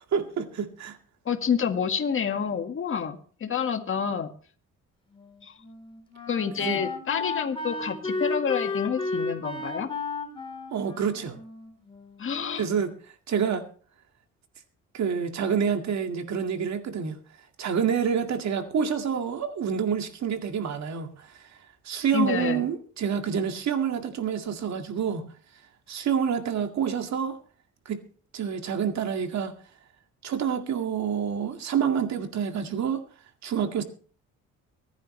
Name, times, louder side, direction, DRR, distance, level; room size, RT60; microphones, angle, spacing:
voice 1, 0.1-1.0 6.6-6.8 10.7-11.4 12.6-12.9 13.3-13.6 14.9-17.2 17.6-21.3 21.9-25.3 25.9-27.4 27.9-28.0 28.3-29.5 30.2-33.0 33.4-33.8, right 7 dB, 65° right, 2.1 m, -27 dB
voice 2, 1.2-4.3 5.4-5.6 6.3-9.9 12.2-12.6 22.1-22.6, left 7 dB, 45° left, 1.8 m, -28 dB
Wind instrument woodwind instrument, 5.1-12.4, left 3 dB, 15° left, 3.8 m, -33 dB
24.0 x 10.5 x 3.2 m
cardioid pair, 90°, 30 cm